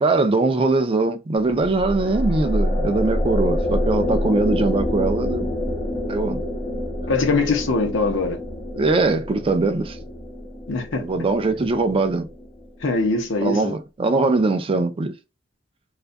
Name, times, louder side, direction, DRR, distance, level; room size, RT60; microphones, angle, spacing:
voice 1, 0.0-5.5 6.1-6.4 8.7-10.0 11.0-12.3 13.4-15.1, right 3 dB, 30° right, 0.3 m, -21 dB
sound 1, 1.4-12.8, left 1 dB, 20° left, 0.6 m, -27 dB
voice 2, 7.1-8.4 10.7-11.1 12.8-13.7, left 3 dB, 90° left, 0.7 m, -22 dB
2.4 x 2.3 x 2.5 m
head